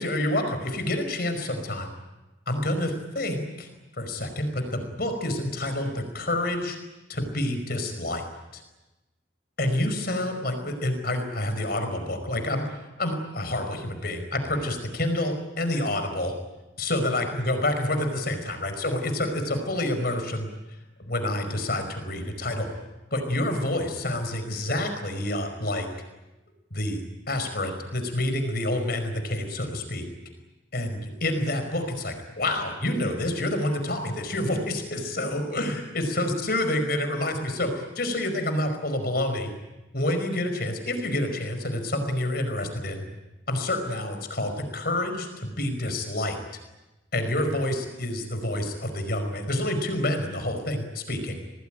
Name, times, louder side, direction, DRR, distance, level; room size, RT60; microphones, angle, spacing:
voice 1, 0.0-1.9 2.5-3.7 4.0-6.8 7.1-8.2 8.5-8.6 9.6-16.3 16.8-20.5 21.0-22.7 23.1-25.9 26.7-30.0 30.7-39.5 39.9-43.0 43.5-46.4 47.1-51.4, left 1 dB, 50° left, 7 dB, 5.2 m, -28 dB
27.0 x 19.5 x 9.1 m, 1.0 s
head